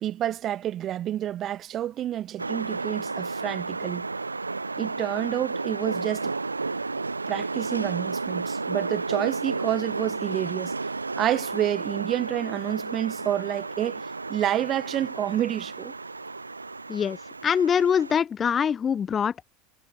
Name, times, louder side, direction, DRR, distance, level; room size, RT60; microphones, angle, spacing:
voice 1, 0.0-4.1 4.8-6.3 7.3-10.7 11.2-14.0 14.3-15.9, right 11 dB, 40° right, 0.6 m, -29 dB
sound 1, 2.4-18.2, right 3 dB, 90° right, 0.4 m, -32 dB
voice 2, 17.4-19.4, left 7 dB, 30° left, 0.3 m, -23 dB
figure-of-eight pair, 75°, 0 cm